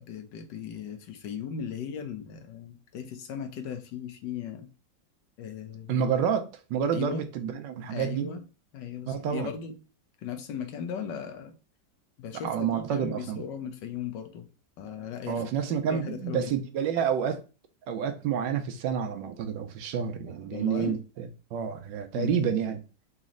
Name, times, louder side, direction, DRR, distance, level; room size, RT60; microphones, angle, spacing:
voice 1, 0.0-4.7 5.4-6.1 6.9-7.2 7.9-8.4 8.7-9.8 10.2-11.5 12.2-14.5 14.8-15.5 15.9-16.5 20.5-21.0 22.1-22.3, left 7 dB, 70° left, 1.3 m, -37 dB
voice 2, 5.9-8.3 9.1-9.5 12.4-13.4 15.3-17.4 17.9-22.8, right 7 dB, 75° right, 1.3 m, -29 dB
4.1 x 3.0 x 3.7 m
omnidirectional pair, 2.1 m